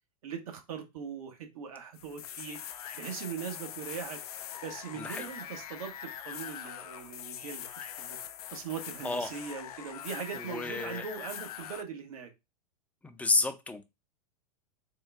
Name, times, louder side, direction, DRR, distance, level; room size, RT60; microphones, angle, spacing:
voice 1, 0.2-2.6 2.9-4.2 4.6-8.2 8.5-12.3, right 7 dB, 65° right, 1.1 m, -40 dB
sound 1, 1.9-11.8, left 10 dB, 75° left, 0.4 m, -43 dB
voice 2, 4.9-5.3 9.0-9.3 10.3-11.0 13.0-13.8, left 3 dB, 5° left, 0.5 m, -31 dB
3.7 x 2.2 x 3.4 m
hypercardioid pair, 100°, 19 cm